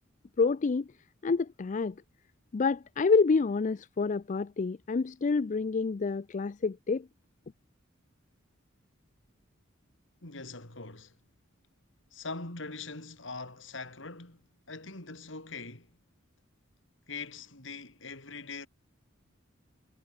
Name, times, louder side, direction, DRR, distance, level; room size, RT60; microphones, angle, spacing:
voice 1, 0.4-0.9 1.2-1.9 2.5-7.1, left 4 dB, 40° left, 0.4 m, -28 dB
voice 2, 10.2-11.1 12.1-15.9 17.1-18.7, left 3 dB, 65° left, 4.3 m, -42 dB
head